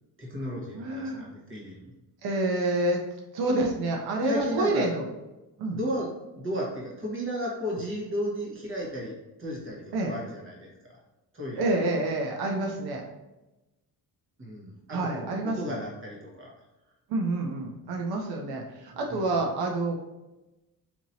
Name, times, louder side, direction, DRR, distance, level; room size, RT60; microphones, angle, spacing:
voice 1, 0.2-1.9 4.0-4.9 5.7-6.1 6.3-11.0 11.3-11.8 14.4-16.5 19.1-19.4, equal, 35° right, -3 dB, 1.2 m, -34 dB
voice 2, 0.7-1.3 2.2-3.0 3.3-5.0 5.6-5.8 9.9-10.1 11.6-13.0 14.9-15.8 17.1-20.0, right 2 dB, 85° right, 1 dB, 0.7 m, -28 dB
4.4 x 2.9 x 2.7 m, 1.0 s
cardioid pair, 150°, 37 cm